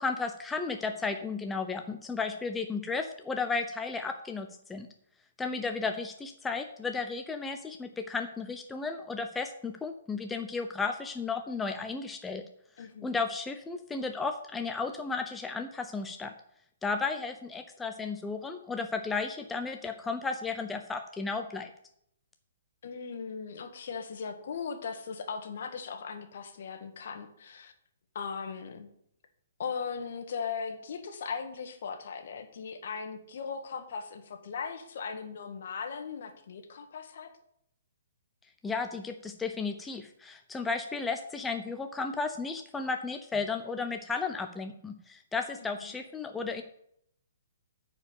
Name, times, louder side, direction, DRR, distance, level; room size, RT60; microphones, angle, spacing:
voice 1, 0.0-4.9 5.4-12.4 13.0-16.3 16.8-21.7 38.6-46.6, left 4 dB, 10° left, 5 dB, 0.7 m, -34 dB
voice 2, 5.4-5.9 12.8-13.1 22.8-27.7 28.1-28.9 29.6-37.3 45.7-46.0, left 6 dB, 60° left, 6 dB, 1.7 m, -38 dB
9.5 x 4.9 x 6.6 m, 0.72 s
figure-of-eight pair, 125°, 0 cm